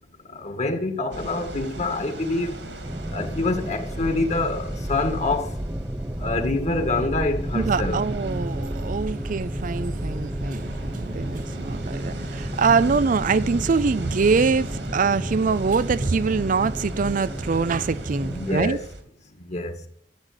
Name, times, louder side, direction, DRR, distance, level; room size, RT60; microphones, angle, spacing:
voice 1, 0.3-2.6 3.1-5.5 6.2-8.0 11.4-11.5 18.2-18.8 19.5-19.7, left 2 dB, 40° left, 2.1 m, -26 dB
sound 1, 1.1-19.0, right 1 dB, 80° right, 2.7 m, -36 dB
sound 2, 2.8-18.5, equal, 15° right, 0.8 m, -32 dB
voice 2, 7.5-18.8, right 5 dB, 50° right, 0.5 m, -24 dB
14.0 x 8.3 x 8.1 m
head